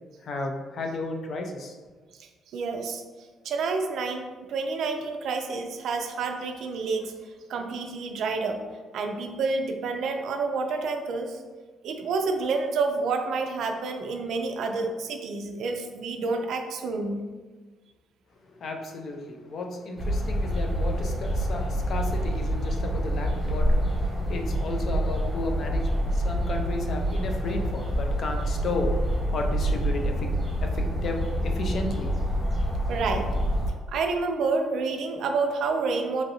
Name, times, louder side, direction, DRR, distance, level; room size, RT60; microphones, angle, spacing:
voice 1, 0.2-1.8 18.5-30.3 30.6-32.4, left 2 dB, 45° left, 3 dB, 0.4 m, -33 dB
voice 2, 2.5-3.0 3.4-4.2 4.5-7.1 7.5-8.6 8.9-11.4 11.8-17.2 32.9-33.3 33.9-36.2, right 4 dB, 60° right, 5 dB, 0.3 m, -28 dB
sound 1, 20.0-33.7, equal, 10° right, 1.0 m, -27 dB
3.0 x 2.5 x 2.7 m, 1.3 s
cardioid pair, 165°, 0 cm